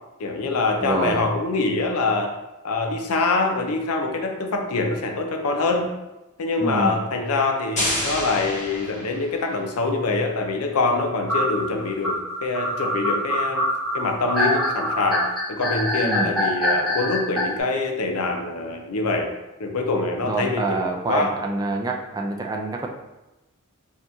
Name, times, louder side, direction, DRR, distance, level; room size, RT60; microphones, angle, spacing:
voice 1, 0.2-2.4 2.6-5.9 6.4-13.7 13.9-19.3 19.6-21.3, left 3 dB, 80° left, 4 dB, 0.6 m, -24 dB
voice 2, 0.8-1.3 6.6-7.0 16.0-16.3 20.2-22.9, right 3 dB, 15° right, 1 dB, 0.3 m, -26 dB
sound 1, 7.8-9.6, left 1 dB, 35° left, 1.3 m, -28 dB
sound 2, 11.3-17.4, left 1 dB, ahead, 1.2 m, -24 dB
4.3 x 2.9 x 2.6 m, 1.0 s
head